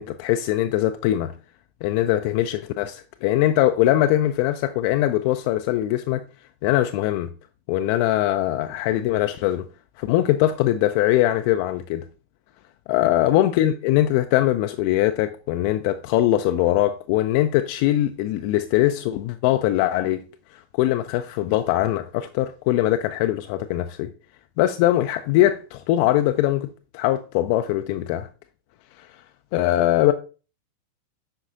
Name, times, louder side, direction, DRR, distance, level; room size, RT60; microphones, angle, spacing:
voice 1, 0.0-1.3 1.8-6.2 6.6-7.3 7.7-9.7 10.0-12.1 12.9-20.2 20.5-24.1 24.6-26.7 26.9-28.3 29.0-29.1 29.5-30.1, left 14 dB, 45° left, 0.3 m, -21 dB
7.9 x 5.4 x 2.6 m
figure-of-eight pair, 90°, 0 cm